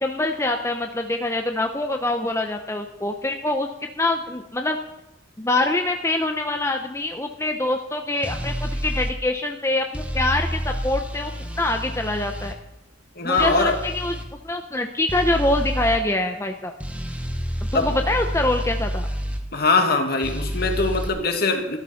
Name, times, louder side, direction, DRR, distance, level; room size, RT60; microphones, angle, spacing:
voice 1, 0.0-3.7 4.0-4.8 5.4-11.3 11.6-12.6 13.2-14.1 14.4-16.7 17.7-19.1, left 2 dB, 15° left, 4 dB, 0.8 m, -24 dB
sound 1, 8.2-9.1 9.9-12.6 13.4-14.3 15.1-16.0 16.8-19.4 20.2-21.1, equal, 5° right, 1.4 m, -29 dB
voice 2, 13.2-13.8 17.7-17.9 19.5-21.8, left 3 dB, 55° left, 4 dB, 2.2 m, -22 dB
14.0 x 13.0 x 5.8 m, 0.90 s
head